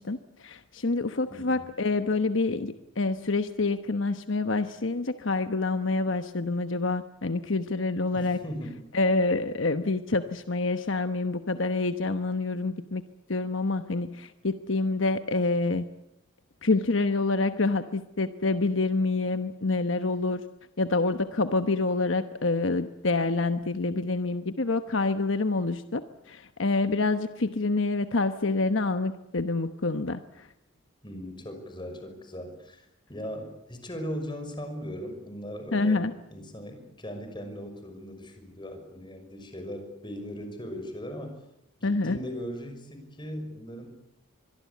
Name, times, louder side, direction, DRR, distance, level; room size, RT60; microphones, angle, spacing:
voice 1, 0.0-8.4 8.9-13.0 13.3-15.9 16.6-20.4 20.8-30.5 35.7-36.1 41.8-42.2, left 3 dB, 65° left, 9 dB, 1.1 m, -27 dB
voice 2, 1.3-1.7 8.1-8.8 31.0-36.0 36.3-41.3 41.8-43.9, equal, 25° left, 6 dB, 5.9 m, -38 dB
25.5 x 22.5 x 8.5 m, 0.85 s
head